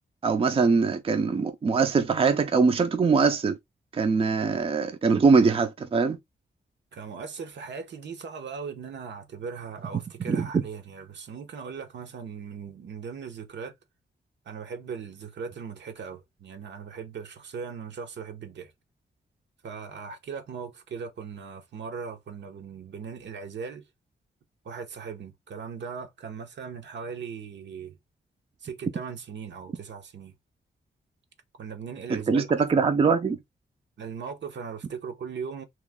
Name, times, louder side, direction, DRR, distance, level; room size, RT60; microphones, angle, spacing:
voice 1, 0.2-3.6 3.9-6.2 10.3-10.6 32.1-33.4, right 5 dB, 30° right, 0.5 m, -22 dB
voice 2, 6.9-13.7 14.4-18.7 19.6-23.9 24.6-28.0 28.6-30.3 31.5-32.5 34.0-35.6, right 6 dB, 75° right, 0.9 m, -39 dB
3.1 x 3.0 x 3.5 m
wide cardioid pair, 170°, 19 cm